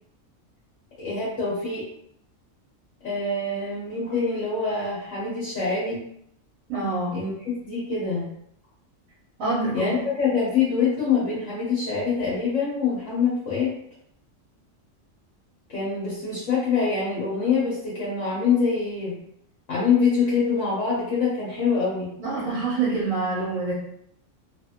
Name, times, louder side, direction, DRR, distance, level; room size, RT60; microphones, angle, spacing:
voice 1, 1.0-1.8 3.0-6.0 7.1-8.2 9.7-13.7 15.7-19.2 19.7-22.1, left 5 dB, 70° left, -7 dB, 1.3 m, -25 dB
voice 2, 6.7-7.2 9.4-9.9 22.2-23.7, right 3 dB, 80° right, -7 dB, 1.3 m, -26 dB
3.0 x 2.4 x 2.8 m, 0.72 s
omnidirectional pair, 1.4 m